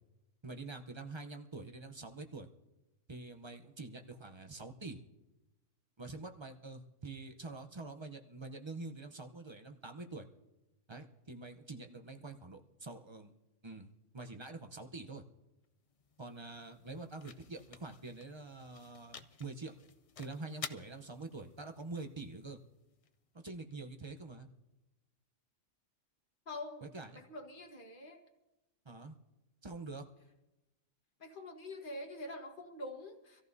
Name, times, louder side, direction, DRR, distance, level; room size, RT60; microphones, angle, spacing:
voice 1, 0.4-2.5 3.1-5.0 6.0-10.3 10.9-13.3 13.6-15.2 16.2-19.7 20.2-22.6 23.4-24.5 26.8-27.2 28.8-29.2 29.6-30.1, right 3 dB, 25° right, 5 dB, 0.7 m, -46 dB
sound 1, 15.6-23.7, left 6 dB, 60° left, 0.3 m, -52 dB
voice 2, 26.4-26.8 27.1-28.2 31.2-33.4, left 1 dB, 40° left, 1 dB, 1.7 m, -45 dB
25.0 x 14.5 x 2.7 m, 1.0 s
omnidirectional pair, 1.3 m